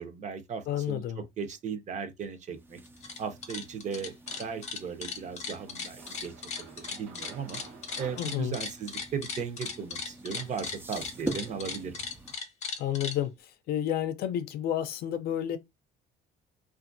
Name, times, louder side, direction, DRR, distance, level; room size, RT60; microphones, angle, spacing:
voice 1, 0.0-2.8 3.2-7.6 8.0-12.0, right 6 dB, 45° right, 0.7 m, -37 dB
voice 2, 0.7-1.2 8.2-8.6 12.8-13.3 13.7-15.6, left 11 dB, 65° left, 0.5 m, -30 dB
sound 1, 2.5-12.3, right 2 dB, 15° right, 0.3 m, -44 dB
sound 2, 2.9-3.2 3.4-13.2, left 5 dB, 40° left, 0.8 m, -37 dB
sound 3, 4.3-4.9 5.6-10.7, right 6 dB, 80° right, 0.7 m, -52 dB
2.8 x 2.4 x 2.5 m
cardioid pair, 110°, 17 cm